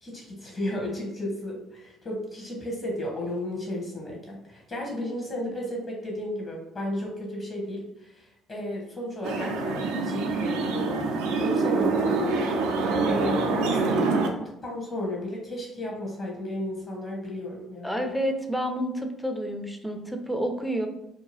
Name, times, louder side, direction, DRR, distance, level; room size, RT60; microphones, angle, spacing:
voice 1, 0.0-11.0 11.4-12.7 13.1-14.2 14.6-18.1, left 1 dB, 40° left, -2 dB, 1.0 m, -34 dB
sound 1, 9.2-14.3, right 3 dB, 70° right, 0.4 m, -25 dB
voice 2, 17.8-20.9, equal, 5° left, 4 dB, 0.5 m, -29 dB
2.7 x 2.3 x 3.1 m, 0.86 s
figure-of-eight pair, 50°, 0 cm